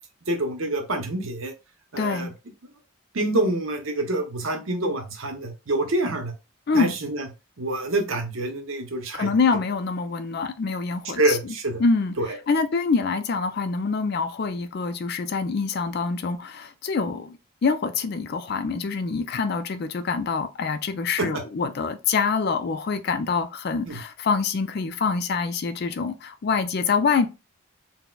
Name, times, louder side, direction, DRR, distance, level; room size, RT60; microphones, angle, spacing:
voice 1, 0.3-1.5 1.9-2.3 3.1-6.3 6.7-7.3 7.6-9.3 11.2-11.8 12.2-12.4 21.2-21.3 23.9-24.0, right 2 dB, 65° right, 0.7 m, -26 dB
voice 2, 2.0-2.3 6.7-6.9 9.1-11.5 11.8-27.3, left 4 dB, 45° left, 0.3 m, -25 dB
4.0 x 2.1 x 2.2 m
head